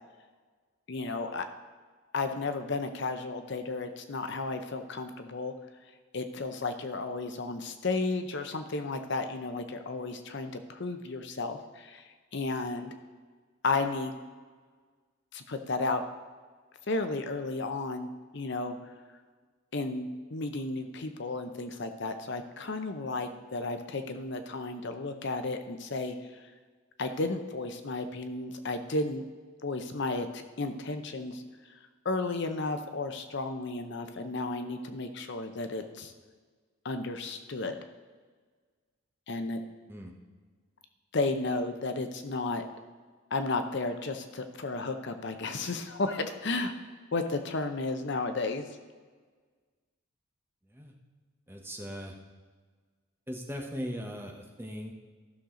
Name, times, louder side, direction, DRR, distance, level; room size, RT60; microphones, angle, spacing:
voice 1, 0.9-1.5 2.1-5.5 6.1-12.0 12.3-12.9 13.6-14.2 15.3-16.0 16.9-18.8 19.7-26.1 27.0-29.2 29.6-31.4 32.0-36.1 36.8-37.8 39.3-39.6 41.1-42.6 43.3-46.7 47.1-48.7, left 3 dB, 60° left, 8 dB, 0.7 m, -33 dB
voice 2, 51.5-52.1 53.3-54.9, equal, 10° right, 1 dB, 1.1 m, -39 dB
14.5 x 6.5 x 3.8 m, 1.5 s
head